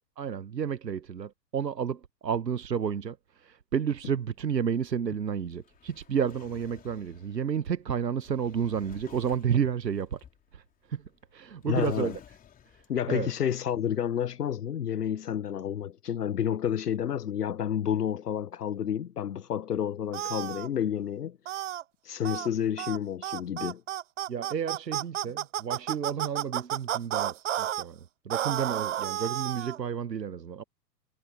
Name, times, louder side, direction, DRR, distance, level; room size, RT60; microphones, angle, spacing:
voice 1, 0.2-10.2 10.5-12.2 12.7-12.8 13.1-13.3 24.3-30.6, right 7 dB, 80° right, 0.9 m, -31 dB
Drawer open or close, 3.9-13.2, left 9 dB, 15° left, 4.0 m, -55 dB
voice 2, 11.6-12.1 12.9-21.4 22.0-23.8, left 9 dB, 70° left, 0.9 m, -30 dB
sound 1, 20.1-20.7 21.5-21.8 22.2-22.5 22.8-23.0 23.2-27.8 28.3-29.8, right 12 dB, 50° right, 0.6 m, -31 dB
figure-of-eight pair, 110°, 50 cm